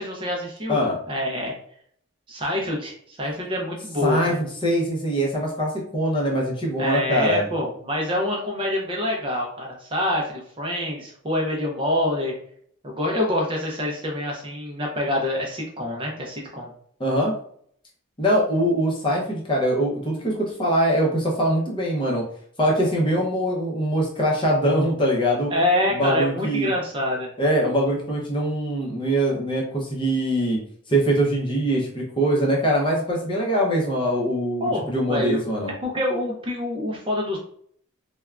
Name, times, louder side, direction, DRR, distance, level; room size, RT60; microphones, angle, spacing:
voice 1, 0.0-0.8 1.1-1.5 2.3-4.4 6.8-12.3 12.8-16.7 25.5-27.3 34.6-35.4 35.8-37.4, left 1 dB, 25° right, 0 dB, 0.5 m, -26 dB
voice 2, 4.0-7.4 17.0-17.3 18.2-22.3 22.6-25.5 25.9-26.7 27.4-30.6 30.9-35.7, equal, 25° left, -2 dB, 0.6 m, -23 dB
3.3 x 2.2 x 2.3 m, 0.62 s
head